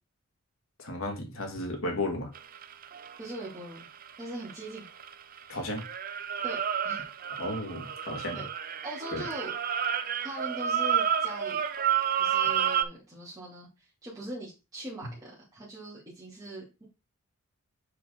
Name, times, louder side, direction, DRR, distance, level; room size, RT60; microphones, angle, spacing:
voice 1, 0.8-2.3 5.5-5.8 7.4-8.4 9.1-9.3, left 1 dB, 75° left, 2.1 m, -34 dB
sound 1, 2.3-5.4 5.8-12.8, right 8 dB, 40° right, 0.5 m, -30 dB
voice 2, 3.2-3.9 4.2-4.9 6.4-7.0 8.3-8.5 8.8-9.5 10.2-11.6 12.2-13.7 14.0-16.8, right 1 dB, 15° right, 2.9 m, -41 dB
6.6 x 5.5 x 3.9 m
head